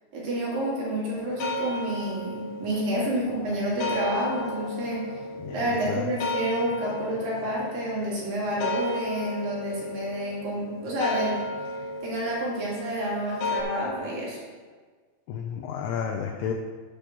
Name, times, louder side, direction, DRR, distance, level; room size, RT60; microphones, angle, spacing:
voice 1, 0.1-5.0 5.5-11.5 12.0-14.4, right 1 dB, 55° right, -5 dB, 3.9 m, -29 dB
sound 1, 1.1-13.6, left 1 dB, 45° left, 2.4 m, -34 dB
voice 2, 5.4-6.1 15.3-16.5, left 7 dB, 80° left, 1 dB, 2.3 m, -32 dB
8.4 x 6.8 x 6.1 m, 1.5 s
omnidirectional pair, 5.4 m